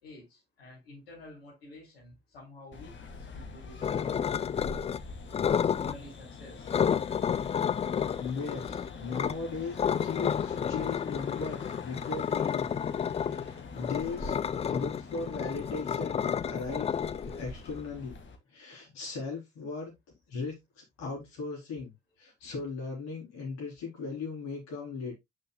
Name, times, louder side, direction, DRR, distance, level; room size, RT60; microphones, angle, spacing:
voice 1, 0.0-4.3 5.8-6.7, left 1 dB, 85° left, 2.7 m, -50 dB
sound 1, 2.7-18.4, left 4 dB, 40° left, 1.8 m, -44 dB
sound 2, 3.8-5.0 5.3-6.0 6.7-9.3 9.8-17.8, left 8 dB, 20° left, 0.3 m, -31 dB
voice 2, 8.2-12.8 13.1-18.2 18.5-19.9 20.3-21.9 22.2-25.1, left 4 dB, 65° left, 3.6 m, -38 dB
9.6 x 5.6 x 2.2 m
figure-of-eight pair, 50°, 29 cm